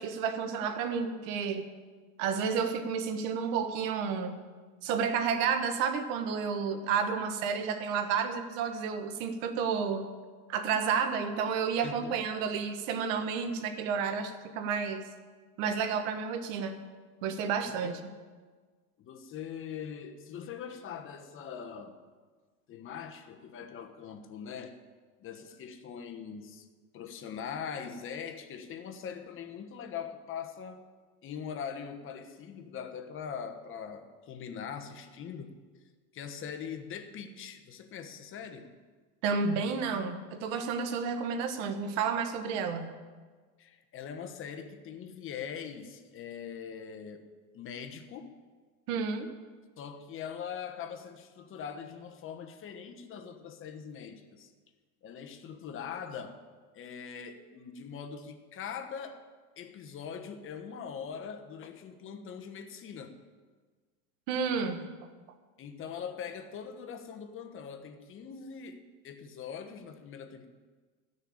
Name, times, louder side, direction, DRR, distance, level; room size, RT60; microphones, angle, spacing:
voice 1, 0.0-1.7 2.2-4.4 4.8-10.1 10.5-15.0 15.6-16.8 17.2-18.0 39.2-42.9 48.9-49.3 64.3-64.9, right 6 dB, 60° right, 8 dB, 1.5 m, -31 dB
voice 2, 11.8-12.2 17.7-18.0 19.0-22.0 22.7-24.8 25.2-26.7 26.9-30.9 31.2-35.8 36.1-38.7 43.6-47.3 47.5-48.3 49.8-54.5 55.0-56.4 56.7-59.2 59.6-63.2 65.6-70.5, left 7 dB, 30° left, 6 dB, 1.1 m, -42 dB
13.0 x 6.7 x 8.7 m, 1.4 s
supercardioid pair, 140°, 43 cm